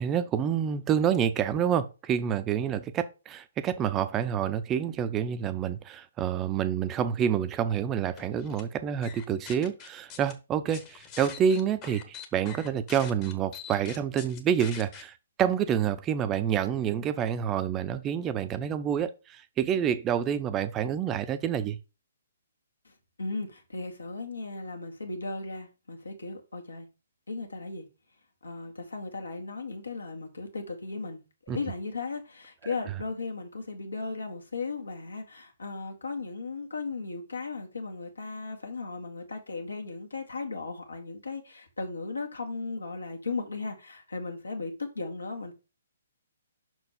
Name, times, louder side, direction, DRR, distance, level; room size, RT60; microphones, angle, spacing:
voice 1, 0.0-15.1 15.4-21.8 31.5-31.6, right 8 dB, 20° right, 0.6 m, -28 dB
sound 1, 8.2-8.6 9.0-10.3 10.7-15.0, left 8 dB, 25° left, 1.2 m, -44 dB
voice 2, 22.8-26.9 27.3-27.9 28.4-45.5, left 3 dB, 75° left, 2.1 m, -36 dB
6.0 x 4.6 x 5.2 m
figure-of-eight pair, 130°, 0 cm